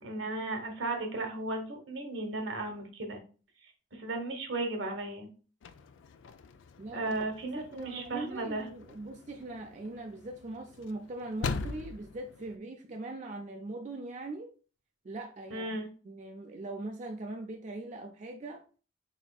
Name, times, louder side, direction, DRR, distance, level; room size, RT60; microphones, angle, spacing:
voice 1, 0.0-3.2 3.6-5.3 6.9-8.7 15.5-15.9, right 2 dB, 75° right, 4 dB, 1.1 m, -35 dB
sound 1, 5.6-12.6, left 4 dB, 75° left, 0.4 m, -42 dB
voice 2, 6.8-7.1 7.6-14.5 15.0-18.6, right 2 dB, 40° right, 2 dB, 0.5 m, -41 dB
4.3 x 4.2 x 2.3 m, 0.37 s
head